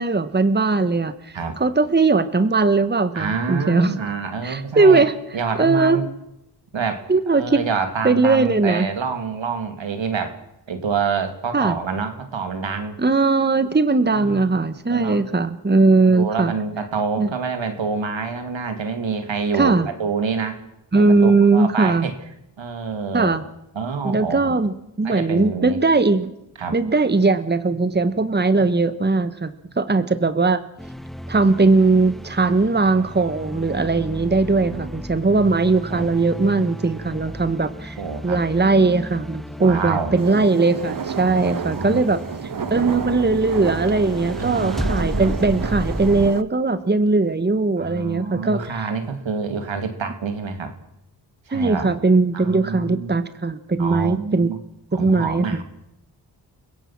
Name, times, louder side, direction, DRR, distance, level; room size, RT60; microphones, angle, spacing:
voice 1, 0.0-3.9 4.4-5.1 5.6-6.0 7.1-7.6 8.0-8.9 11.5-11.8 13.0-16.5 17.2-17.3 19.5-19.9 20.9-22.1 23.1-23.4 24.0-26.3 26.7-29.5 29.8-30.6 31.3-38.0 38.2-42.2 42.7-48.6 51.5-54.5 54.9-55.5, right 3 dB, 20° right, 12 dB, 1.3 m, -19 dB
voice 2, 3.1-5.0 5.3-6.1 6.7-10.4 10.7-13.0 14.1-14.5 14.9-15.2 16.0-20.6 21.0-22.1 22.6-23.3 23.7-24.6 25.0-25.8 26.6-26.8 28.6-28.7 34.7-34.9 35.9-36.1 38.0-38.4 39.6-40.1 41.2-42.2 42.6-42.9 44.4-45.4 47.8-50.7 51.5-51.9 52.3-53.1 53.8-54.6 54.9-55.6, right 5 dB, 80° right, 7 dB, 2.8 m, -27 dB
sound 1, 30.8-46.3, equal, ahead, 0.8 m, -33 dB
sound 2, 40.2-46.4, right 7 dB, 45° right, 1.0 m, -31 dB
28.5 x 16.5 x 6.1 m, 0.83 s
cardioid pair, 55°, 45 cm